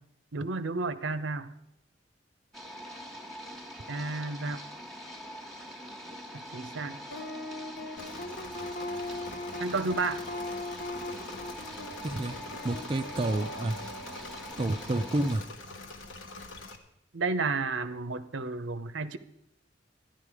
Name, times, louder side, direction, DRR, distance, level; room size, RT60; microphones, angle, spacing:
voice 1, 0.3-1.5 3.9-4.6 6.5-7.0 9.6-10.2 17.1-19.2, right 3 dB, 75° right, 13 dB, 0.7 m, -31 dB
sound 1, 2.5-15.4, equal, ahead, 1.4 m, -44 dB
sound 2, 7.1-14.5, left 2 dB, 50° left, 1.2 m, -40 dB
Engine / Mechanisms, 8.0-16.8, left 2 dB, 85° left, 1.3 m, -45 dB
voice 2, 12.0-12.4 12.6-13.8 14.6-15.4, right 2 dB, 30° right, 6 dB, 0.4 m, -29 dB
12.0 x 10.5 x 4.8 m, 0.76 s
head